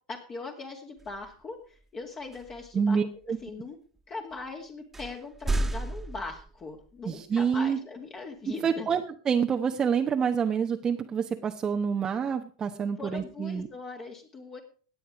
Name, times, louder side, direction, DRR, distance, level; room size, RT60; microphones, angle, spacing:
voice 1, 0.1-3.0 3.4-3.8 4.1-9.0 13.0-14.6, left 3 dB, 30° left, 1 dB, 2.3 m, -40 dB
sound 1, 1.0-1.3 2.3-2.7 3.4-3.5 4.3-4.4 4.9-6.9, right 2 dB, 10° right, 1.8 m, -32 dB
voice 2, 2.7-3.4 7.0-7.8 8.6-13.7, right 6 dB, 25° right, 4 dB, 1.0 m, -27 dB
17.0 x 9.2 x 5.0 m, 0.41 s
supercardioid pair, 115°, 2 cm